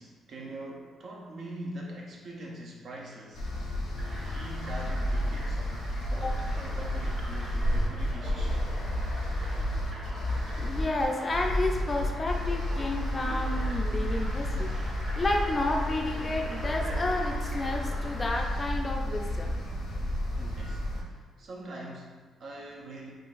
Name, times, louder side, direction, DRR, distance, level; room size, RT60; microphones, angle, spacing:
voice 1, 0.0-3.5 4.1-5.8 6.1-8.7 20.4-23.1, right 1 dB, 60° right, -2 dB, 0.5 m, -43 dB
sound 1, 3.3-21.0, left 1 dB, 75° left, 0.6 m, -31 dB
sound 2, 4.0-18.3, equal, 30° right, 1.2 m, -43 dB
voice 2, 10.6-19.6, left 2 dB, 30° left, 2 dB, 0.4 m, -31 dB
3.8 x 2.3 x 2.5 m, 1.4 s
cardioid pair, 90°, 0 cm